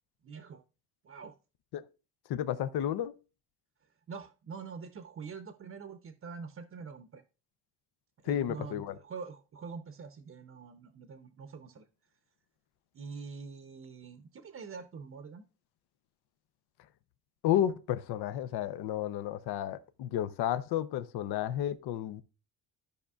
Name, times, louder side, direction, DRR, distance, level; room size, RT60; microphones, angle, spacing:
voice 1, 0.2-0.6 1.0-1.3 4.1-7.2 8.2-11.9 12.9-15.4, right 5 dB, 35° right, 0.7 m, -45 dB
voice 2, 2.3-3.1 8.2-8.9 17.4-22.2, left 11 dB, 85° left, 0.6 m, -32 dB
14.0 x 5.1 x 2.3 m
cardioid pair, 125°, 38 cm